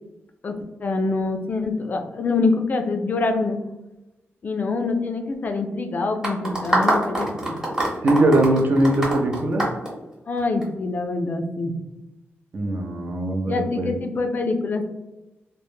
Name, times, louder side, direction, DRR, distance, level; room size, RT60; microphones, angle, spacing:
voice 1, 0.8-3.6 4.4-7.6 10.3-11.7 13.5-14.9, left 3 dB, 40° left, 5 dB, 0.3 m, -25 dB
sound 1, 6.2-10.6, right 1 dB, 15° right, 0.8 m, -24 dB
voice 2, 8.0-9.6 12.5-13.9, right 1 dB, 45° right, 3 dB, 0.4 m, -21 dB
2.1 x 2.1 x 3.0 m, 0.99 s
wide cardioid pair, 120°, 4 cm